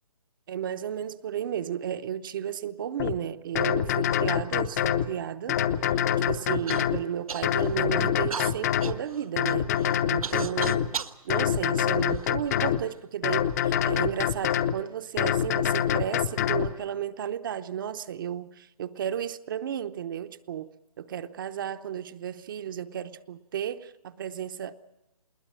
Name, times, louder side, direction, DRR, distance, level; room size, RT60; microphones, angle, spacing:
voice 1, 0.5-5.6 6.3-10.8 11.2-20.7 21.0-24.7, right 9 dB, 35° right, 0.8 m, -33 dB
sound 1, 3.0-3.1 3.6-5.1 5.5-7.0 7.4-9.0 9.4-10.9 11.3-12.8 13.2-14.8 15.2-16.7, left 10 dB, 30° left, 0.8 m, -25 dB
Human voice / Cough, 6.7-6.9 7.3-7.8 8.3-11.2 11.9-12.7 13.5-13.6 14.3-14.6, right 6 dB, 75° right, 1.4 m, -37 dB
21.0 x 19.5 x 8.8 m
hypercardioid pair, 155°, 19 cm